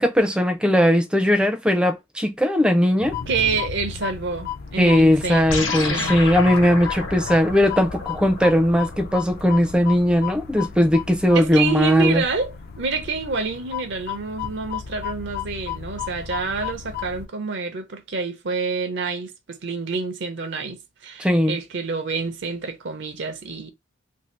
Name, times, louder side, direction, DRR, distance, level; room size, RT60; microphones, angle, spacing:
voice 1, 0.0-3.2 4.8-12.2 21.2-21.6, left 1 dB, 5° right, 0.5 m, -19 dB
sound 1, 3.0-17.3, left 8 dB, 50° left, 0.4 m, -34 dB
voice 2, 3.3-6.2 11.3-23.7, right 5 dB, 60° right, 0.6 m, -28 dB
sound 2, 5.5-10.2, left 3 dB, 65° left, 1.1 m, -31 dB
2.8 x 2.7 x 3.1 m
head